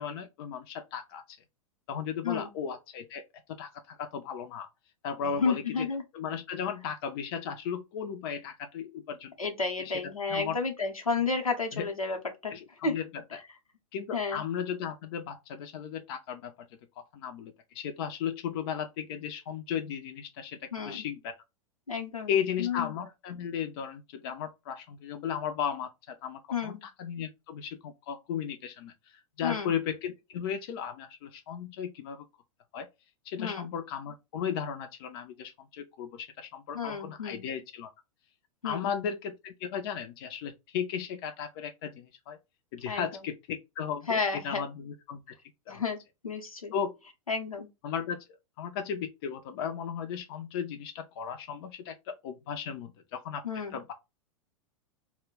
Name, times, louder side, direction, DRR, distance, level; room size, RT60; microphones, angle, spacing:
voice 1, 0.0-1.4 1.9-3.2 3.5-4.7 5.0-5.9 6.1-9.4 9.8-9.9 10.3-10.6 11.7-11.9 12.5-13.2 13.9-16.7 17.0-21.4 22.3-32.2 32.7-32.9 33.3-37.9 38.6-42.4 42.7-45.4 45.7-45.8 46.7-46.9 47.8-48.2 48.6-53.4 53.7-53.9, left 7 dB, 45° left, 0.4 m, -35 dB
voice 2, 5.2-6.0 9.4-12.2 12.4-12.5 12.8-12.9 14.1-14.4 20.7-21.0 21.9-22.9 26.5-26.8 29.4-29.7 33.4-33.7 36.7-37.4 38.6-38.9 42.9-43.1 44.1-44.7 45.7-46.7 47.3-47.7 53.4-53.8, left 4 dB, 85° left, 0.7 m, -31 dB
2.1 x 2.1 x 3.5 m
figure-of-eight pair, 95°, 17 cm